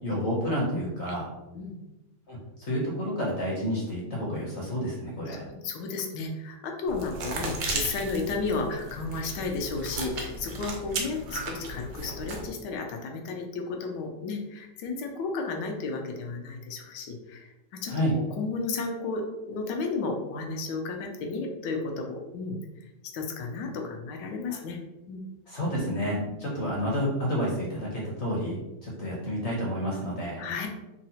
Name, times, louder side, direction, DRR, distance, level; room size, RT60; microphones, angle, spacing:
voice 1, 0.0-1.3 2.3-5.5 17.9-18.1 24.5-24.6 25.5-30.4, equal, 55° left, -4 dB, 0.8 m, -30 dB
voice 2, 5.3-17.9 18.4-22.6 23.1-24.8 25.1-25.2 26.2-26.3 30.4-30.7, left 3 dB, 85° left, 2 dB, 1.2 m, -33 dB
sound 1, 6.9-12.5, right 2 dB, 70° right, 0.6 m, -35 dB
3.7 x 2.0 x 2.7 m, 0.98 s
omnidirectional pair, 1.8 m